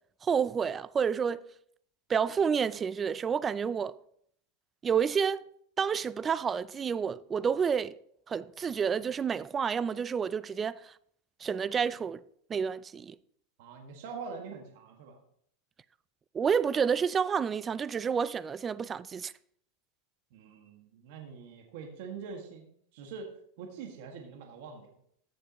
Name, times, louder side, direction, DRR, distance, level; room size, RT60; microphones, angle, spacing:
voice 1, 0.2-1.4 2.1-3.9 4.8-5.4 5.8-7.9 8.3-10.9 11.4-12.2 12.5-13.2 16.3-19.3, right 6 dB, 20° right, 0.3 m, -29 dB
voice 2, 13.6-15.2 20.3-23.3 23.6-25.0, right 5 dB, 65° right, 1.7 m, -44 dB
14.5 x 7.2 x 3.0 m
supercardioid pair, 125°, 0 cm